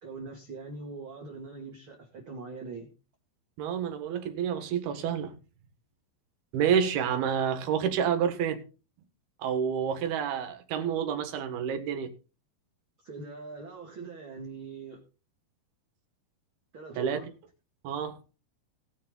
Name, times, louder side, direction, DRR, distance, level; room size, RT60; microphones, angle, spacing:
voice 1, 0.0-2.9 13.0-15.0 16.7-17.3, right 4 dB, 35° right, 2.7 m, -42 dB
voice 2, 3.6-5.3 6.5-8.6 9.4-12.1 17.0-17.2 17.8-18.2, right 8 dB, 75° right, 3.4 m, -29 dB
19.5 x 6.8 x 3.9 m
omnidirectional pair, 4.6 m